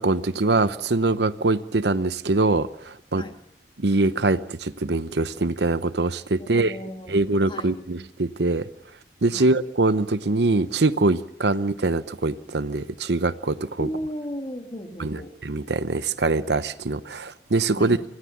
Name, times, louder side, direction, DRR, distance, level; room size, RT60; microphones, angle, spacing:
voice 1, 0.0-3.2 3.8-6.8 7.1-8.7 9.2-13.9 15.0-18.0, right 2 dB, 75° right, 13 dB, 0.9 m, -23 dB
voice 2, 6.4-7.2 7.5-7.8 9.3-9.5 13.8-15.3 17.7-18.0, equal, 30° left, 5 dB, 2.4 m, -35 dB
26.0 x 17.5 x 7.3 m, 0.74 s
head